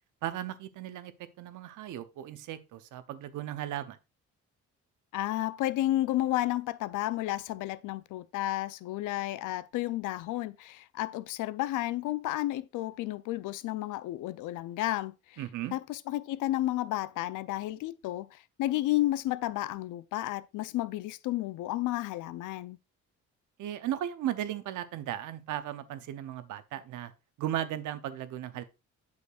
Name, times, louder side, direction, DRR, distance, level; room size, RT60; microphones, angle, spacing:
voice 1, 0.2-1.1 1.4-4.0 15.4-15.7 23.6-27.1 27.4-28.6, right 12 dB, 80° right, 0.7 m, -36 dB
voice 2, 5.1-15.4 15.7-22.8, left 15 dB, 85° left, 0.5 m, -32 dB
8.3 x 6.5 x 2.4 m
cardioid pair, 90°, 30 cm